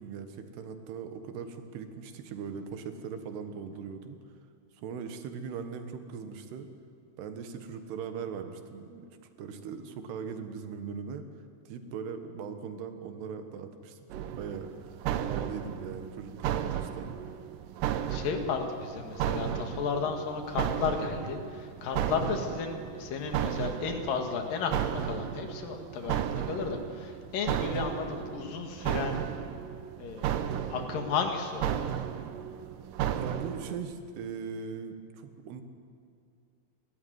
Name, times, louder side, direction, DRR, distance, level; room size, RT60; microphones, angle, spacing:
voice 1, 0.0-4.2 4.8-6.7 7.2-9.1 9.4-11.3 11.7-14.9 15.2-17.1 33.2-35.6, right 6 dB, 90° right, 7 dB, 3.6 m, -40 dB
sound 1, 14.1-33.8, right 10 dB, 70° right, 2.3 m, -34 dB
voice 2, 18.1-29.2 30.0-32.0, left 5 dB, 65° left, 5 dB, 3.5 m, -33 dB
29.0 x 13.5 x 9.6 m, 2.4 s
omnidirectional pair, 4.6 m